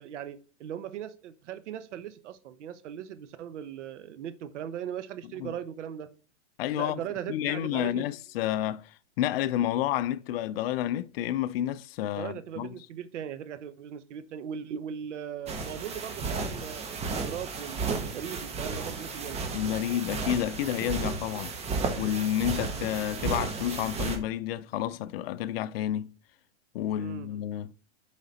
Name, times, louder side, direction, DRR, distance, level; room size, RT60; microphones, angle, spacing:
voice 1, 0.0-6.1 6.8-8.0 12.2-19.4 27.0-27.4, right 9 dB, 80° right, 1.0 m, -39 dB
voice 2, 6.6-7.0 7.3-8.9 9.2-12.7 19.5-21.6 22.0-26.1 26.7-27.7, left 12 dB, 55° left, 0.5 m, -30 dB
sound 1, 15.5-24.2, right 4 dB, 20° right, 1.1 m, -33 dB
6.6 x 5.0 x 4.1 m
supercardioid pair, 145°, 35 cm